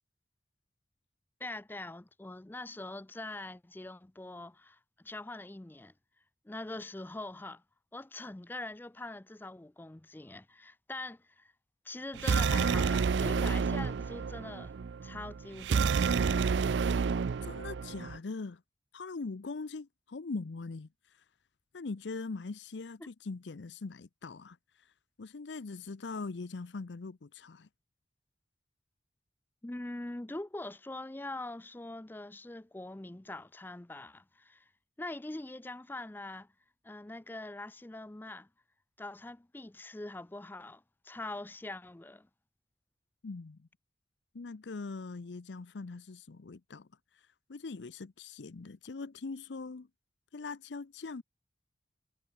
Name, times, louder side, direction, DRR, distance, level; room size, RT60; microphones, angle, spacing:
voice 1, 1.4-5.9 6.4-7.6 7.9-11.5 11.8-14.7 15.0-16.3 23.0-23.1 29.6-34.7 35.0-36.5 36.8-38.5 39.0-42.3, left 2 dB, 10° left, 0.4 m, -43 dB
sound 1, 12.1-18.2, right 5 dB, 85° right, 0.4 m, -29 dB
voice 2, 17.4-18.6 18.9-20.9 21.7-24.6 25.2-27.7 43.2-43.7 44.3-46.9 47.5-49.9 50.3-51.2, left 3 dB, 85° left, 0.6 m, -41 dB
head